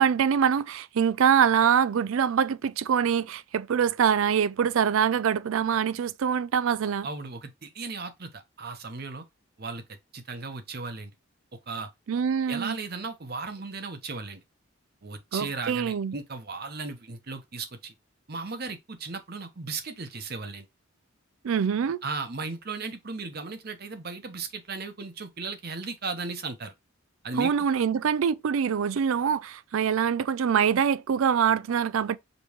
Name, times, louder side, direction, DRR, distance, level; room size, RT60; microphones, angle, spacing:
voice 1, 0.0-7.1 12.1-12.8 15.3-16.1 21.4-22.0 27.4-32.2, right 7 dB, 70° right, 0.4 m, -24 dB
voice 2, 7.0-9.3 9.6-11.1 11.7-11.9 12.5-14.4 15.0-17.9 18.3-20.7 22.0-26.7 27.2-27.7, right 4 dB, 45° right, 0.8 m, -36 dB
5.2 x 3.0 x 3.0 m
head